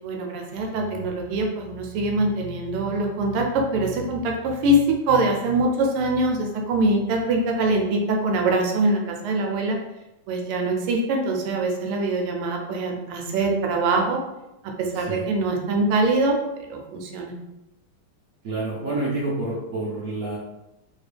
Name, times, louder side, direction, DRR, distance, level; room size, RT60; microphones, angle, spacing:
voice 1, 0.0-9.8 10.3-14.2 14.6-16.4 16.7-17.3, right 2 dB, 85° right, 1 dB, 1.5 m, -23 dB
voice 2, 14.9-15.3 18.4-20.4, right 2 dB, 60° right, -7 dB, 0.9 m, -28 dB
3.4 x 2.9 x 3.3 m, 0.95 s
omnidirectional pair, 2.4 m